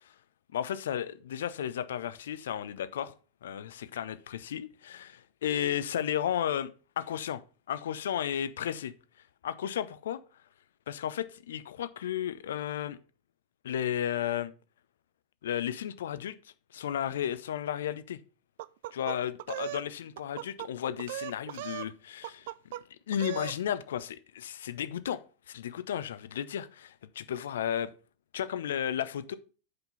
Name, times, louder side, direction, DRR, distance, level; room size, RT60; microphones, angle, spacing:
voice 1, 0.5-3.1 3.4-6.7 7.0-7.4 7.7-8.9 9.4-10.2 10.9-13.0 13.6-14.5 15.4-16.4 16.7-18.2 18.9-22.5 23.1-25.2 25.5-27.9 28.3-29.4, left 10 dB, 60° left, 0.6 m, -33 dB
sound 1, 18.6-19.9 20.2-20.7 21.0-21.9 22.2-22.8 23.1-23.6, right 14 dB, 55° right, 0.3 m, -38 dB
6.8 x 5.3 x 5.5 m
figure-of-eight pair, 90°, 0 cm